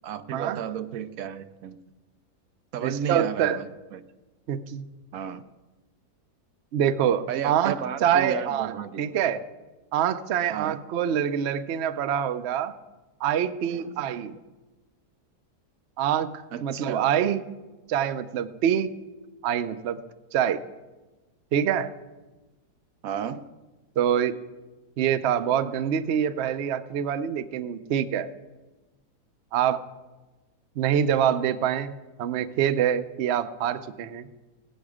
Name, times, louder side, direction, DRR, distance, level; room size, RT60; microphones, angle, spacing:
voice 1, 0.0-1.8 2.7-3.6 3.9-4.0 4.7-4.8 5.1-5.4 7.3-9.1 10.5-10.8 13.7-14.1 16.5-17.2 23.0-23.5, right 8 dB, 70° right, 11 dB, 0.9 m, -33 dB
voice 2, 2.8-3.6 4.5-4.9 6.7-7.8 8.0-9.4 9.9-12.7 13.2-14.3 16.0-16.3 16.6-17.4 17.9-18.9 19.4-20.0 20.3-20.6 21.5-21.9 24.0-24.4 25.0-28.3 29.5-29.8 30.8-31.9 32.2-34.3, right 9 dB, 90° right, 12 dB, 0.5 m, -25 dB
17.0 x 8.4 x 4.9 m, 1.2 s
omnidirectional pair, 1.8 m